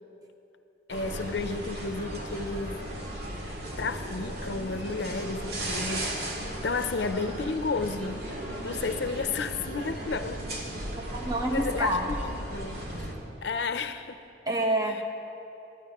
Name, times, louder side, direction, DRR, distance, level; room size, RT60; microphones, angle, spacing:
voice 1, 0.9-2.8 3.8-6.3 6.6-8.3 8.6-10.4 11.5-13.1 13.4-14.2, left 4 dB, 70° left, 9 dB, 0.6 m, -32 dB
sound 1, 0.9-13.1, right 1 dB, 60° right, 2.0 m, -36 dB
voice 2, 11.1-12.1 14.4-15.0, right 1 dB, 20° right, 2 dB, 1.0 m, -27 dB
19.0 x 12.5 x 3.0 m, 2.9 s
head